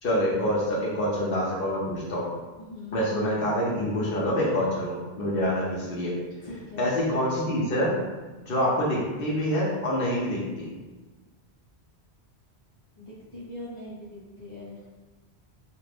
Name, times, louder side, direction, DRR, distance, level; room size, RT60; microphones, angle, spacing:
voice 1, 0.0-2.3 2.9-6.1 6.8-7.9 8.5-10.7, equal, 65° left, -5 dB, 0.8 m, -26 dB
voice 2, 2.6-3.1 6.4-6.9 12.9-14.9, left 1 dB, 30° left, -10 dB, 1.0 m, -41 dB
2.5 x 2.4 x 3.3 m, 1.2 s
omnidirectional pair, 1.1 m